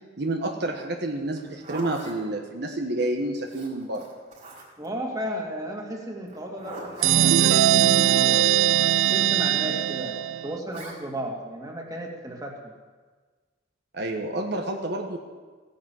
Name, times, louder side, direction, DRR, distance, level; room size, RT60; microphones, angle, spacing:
voice 1, 0.2-4.0 13.9-15.2, right 1 dB, 60° right, 2 dB, 1.4 m, -29 dB
Zipper (clothing), 1.3-2.2 3.5-4.9 6.3-7.3 8.8-9.2 10.7-11.0, right 2 dB, 40° right, 4.7 m, -41 dB
voice 2, 4.8-8.5 9.0-10.2 10.4-12.7, equal, 20° right, 0 dB, 2.4 m, -34 dB
sound 1, 7.0-10.6, right 11 dB, 90° right, 0.4 m, -20 dB
16.5 x 10.5 x 7.7 m, 1.4 s
head